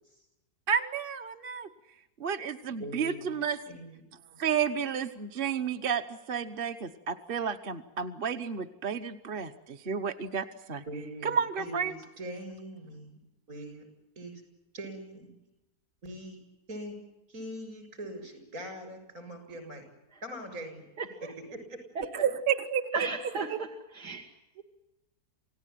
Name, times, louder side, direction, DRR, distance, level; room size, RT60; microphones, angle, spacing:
voice 1, 0.7-1.7 2.2-3.6 4.4-10.8 11.2-11.9 22.1-23.1 23.5-23.6, right 7 dB, 40° right, 7 dB, 1.1 m, -31 dB
voice 2, 2.8-3.3 3.7-4.0 10.9-13.2 13.5-13.9 14.2-14.4 14.7-15.4 16.0-16.4 16.7-17.0 17.3-19.8 20.2-20.8 21.5-21.8, right 1 dB, 60° right, 7 dB, 7.5 m, -42 dB
voice 3, 21.0-21.3 22.0-22.1 22.9-23.7 23.9-24.2 24.6-24.7, right 4 dB, 80° right, 1 dB, 2.6 m, -34 dB
28.0 x 17.5 x 9.1 m, 0.97 s
omnidirectional pair, 1.7 m